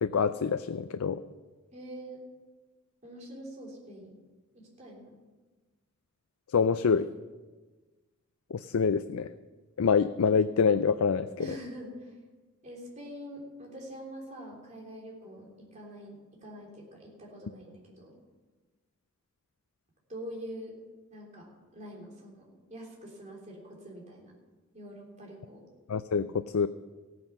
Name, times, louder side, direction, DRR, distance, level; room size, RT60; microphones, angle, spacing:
voice 1, 0.0-1.2 6.5-7.1 8.5-9.3 9.8-11.3 25.9-26.3 26.5-26.7, left 6 dB, 80° left, 12 dB, 0.4 m, -25 dB
voice 2, 1.7-2.2 3.0-4.2 4.5-5.2 11.4-12.2 12.6-18.2 20.1-20.8 21.1-21.5 21.7-24.3 24.7-25.6, equal, 35° right, -2 dB, 3.5 m, -45 dB
15.5 x 9.6 x 6.1 m, 1.3 s
head